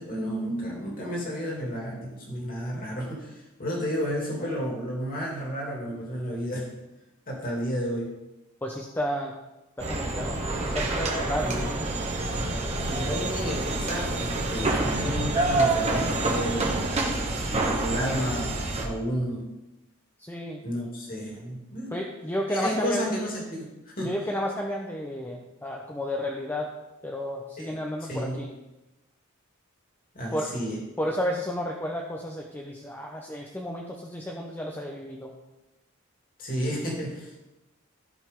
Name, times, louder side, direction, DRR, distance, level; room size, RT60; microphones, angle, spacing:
voice 1, 0.0-6.7 7.3-8.1 11.4-11.7 12.7-17.1 17.8-19.5 20.6-21.9 22.5-24.1 27.6-27.7 28.1-28.4 30.1-30.8 36.4-37.4, equal, 45° left, -3 dB, 2.7 m, -32 dB
voice 2, 8.6-9.3 9.8-11.6 20.2-20.6 21.9-23.1 24.0-26.7 27.0-28.5 30.3-30.5 31.0-35.3, equal, 10° left, 0 dB, 0.7 m, -32 dB
sound 1, 9.8-18.9, right 2 dB, 30° right, 1.4 m, -27 dB
15.0 x 5.3 x 3.7 m, 0.99 s
head